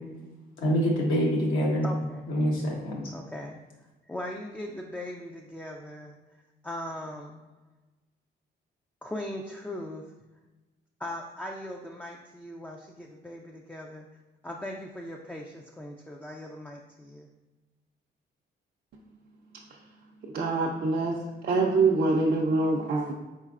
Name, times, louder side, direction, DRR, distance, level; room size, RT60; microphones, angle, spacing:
voice 1, 0.6-1.9 2.3-3.1, equal, 85° left, -3 dB, 1.2 m, -25 dB
voice 2, 1.8-2.2 3.1-3.6 4.1-6.1 6.6-7.4 9.0-10.0 11.0-14.1 14.4-17.3, left 1 dB, 5° left, 0 dB, 0.3 m, -39 dB
voice 3, 20.3-21.1 21.4-23.1, right 3 dB, 50° right, -2 dB, 0.5 m, -24 dB
4.3 x 3.9 x 2.4 m, 1.2 s
cardioid pair, 90°, 20 cm